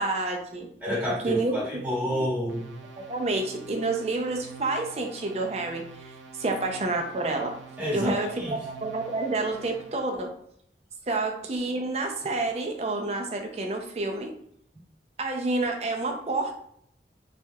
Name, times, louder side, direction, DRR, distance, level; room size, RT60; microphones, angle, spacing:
voice 1, 0.0-0.7 1.2-1.6 2.0-2.2 3.1-6.1 6.4-7.5 7.9-10.3 11.1-14.3 15.2-16.5, right 2 dB, 35° right, 3 dB, 0.4 m, -29 dB
voice 2, 0.8-2.6 7.8-8.6, equal, 10° right, -8 dB, 1.3 m, -29 dB
sound 1, 2.5-10.0, right 4 dB, 90° right, 0.5 m, -47 dB
3.2 x 2.3 x 2.7 m, 0.69 s
head